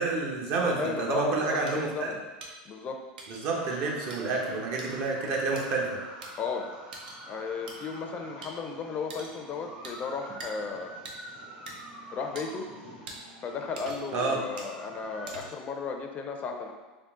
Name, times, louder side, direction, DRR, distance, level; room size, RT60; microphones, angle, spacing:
voice 1, 0.0-2.1 3.3-5.9 14.1-14.4, right 3 dB, 55° right, -1 dB, 0.8 m, -29 dB
voice 2, 0.7-2.2 2.7-3.0 6.4-6.7 7.2-11.0 12.1-12.7 13.4-16.7, left 5 dB, 30° left, 4 dB, 0.4 m, -35 dB
sound 1, 1.7-1.8 2.4-2.5 3.2-3.4 4.1-4.2 4.8-4.9 5.6-5.7 6.2-6.3 6.9-7.2 7.7-7.8 8.4-8.5 9.1-9.4 9.8-10.0 10.4-10.5 11.1-11.2 11.7-11.8 12.4-12.5 13.1-13.2 13.8-14.2 14.6-14.7 15.3-15.7, right 3 dB, 90° right, 0.6 m, -43 dB
sound 2, 3.5-15.3, right 1 dB, 35° right, 1.1 m, -46 dB
3.7 x 2.4 x 3.5 m, 1.2 s
supercardioid pair, 115°, 5 cm